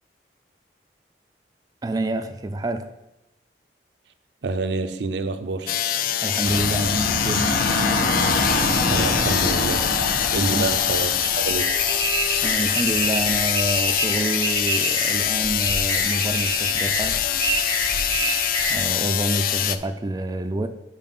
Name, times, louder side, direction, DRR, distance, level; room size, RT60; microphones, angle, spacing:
voice 1, 1.8-2.9 6.2-7.5 10.3-10.7 12.4-17.2 18.7-20.7, right 2 dB, 20° right, 0.4 m, -27 dB
voice 2, 4.4-5.8 8.9-9.9 10.3-11.7, right 3 dB, 80° right, 0.5 m, -27 dB
sound 1, 5.7-19.8, left 10 dB, 50° left, 0.3 m, -24 dB
sound 2, 6.4-12.0, left 1 dB, 75° left, 1.3 m, -25 dB
sound 3, 11.5-18.9, right 2 dB, 15° left, 0.9 m, -27 dB
5.6 x 4.9 x 5.3 m
head